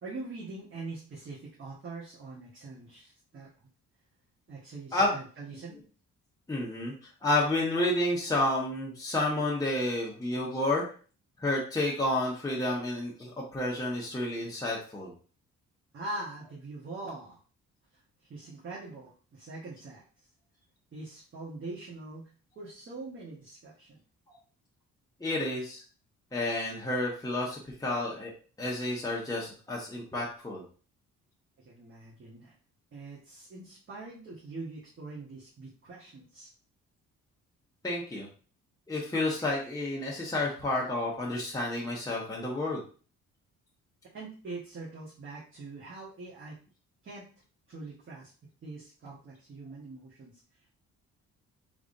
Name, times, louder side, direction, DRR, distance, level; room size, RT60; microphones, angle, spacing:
voice 1, 0.0-3.5 4.5-5.8 15.9-17.4 18.3-20.0 20.9-22.3 22.5-24.0 31.6-32.5 32.9-36.5 44.1-46.6 47.0-47.3 47.7-48.3 48.6-50.4, right 2 dB, 40° right, -6 dB, 1.4 m, -43 dB
voice 2, 6.5-6.9 7.2-10.9 11.4-15.1 25.2-25.8 26.3-28.3 28.6-30.6 37.8-38.3 38.9-42.8, left 2 dB, 10° left, -4 dB, 1.1 m, -30 dB
3.5 x 3.4 x 2.6 m, 0.39 s
cardioid pair, 90°, 30 cm